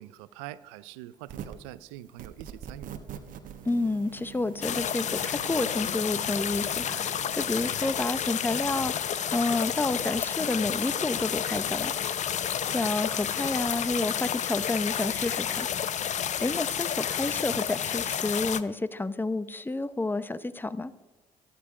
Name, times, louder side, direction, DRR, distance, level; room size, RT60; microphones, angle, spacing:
voice 1, 0.0-3.0, right 14 dB, 90° right, 16 dB, 0.5 m, -44 dB
sound 1, 1.2-1.7 2.2-7.5, right 9 dB, 65° right, 1.2 m, -44 dB
voice 2, 3.6-11.9 12.6-15.7 16.4-20.9, left 2 dB, 15° left, 14 dB, 0.8 m, -30 dB
sound 2, 4.6-18.6, left 9 dB, 55° left, 0.7 m, -30 dB
12.5 x 12.5 x 5.0 m, 1.1 s
hypercardioid pair, 55°, 15 cm